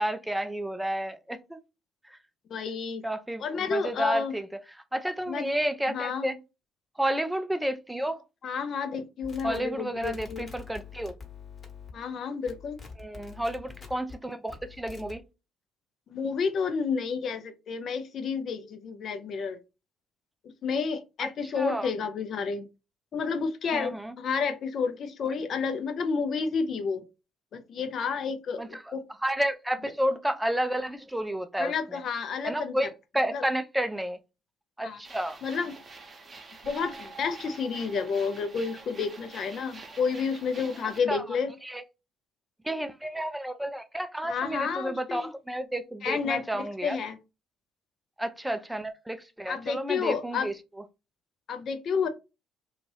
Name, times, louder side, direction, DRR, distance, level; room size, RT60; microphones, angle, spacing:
voice 1, 0.0-1.6 3.0-4.5 4.9-6.4 7.0-8.2 9.4-11.1 13.0-15.2 21.2-21.3 21.5-21.9 23.7-24.1 28.6-28.9 29.2-31.7 32.4-34.2 34.8-35.4 41.1-41.2 41.6-41.8 42.6-47.0 48.2-50.5, right 1 dB, 5° right, 0.4 m, -31 dB
voice 2, 2.5-3.0 3.4-4.3 5.3-5.5 5.9-6.3 8.4-10.5 11.9-12.8 16.1-19.6 20.4-22.6 23.1-27.0 27.5-29.0 31.6-32.9 33.3-33.4 34.8-35.0 35.4-35.8 36.6-41.5 44.2-45.3 46.0-47.2 49.5-50.5 51.5-52.1, left 5 dB, 55° left, 0.6 m, -30 dB
sound 1, 9.2-12.2 12.5-14.1 14.5-15.2, left 6 dB, 35° left, 1.2 m, -45 dB
sound 2, 35.0-41.0, right 3 dB, 35° right, 0.8 m, -46 dB
2.5 x 2.4 x 3.3 m
hypercardioid pair, 55°, 0 cm